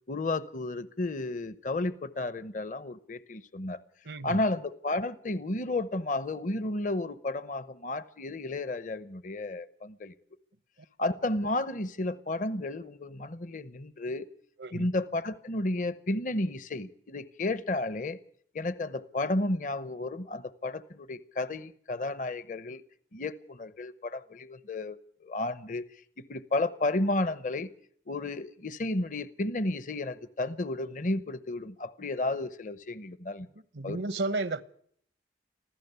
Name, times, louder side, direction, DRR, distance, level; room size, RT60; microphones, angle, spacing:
voice 1, 0.1-3.8 4.2-10.1 11.0-14.3 14.7-18.2 18.5-22.8 23.1-25.8 26.2-27.7 28.1-33.5 33.8-34.0, left 2 dB, 45° left, 0.8 m, -32 dB
voice 2, 4.0-4.4 14.6-14.9 33.7-34.6, right 2 dB, 80° right, 1.0 m, -32 dB
25.5 x 15.5 x 6.9 m
head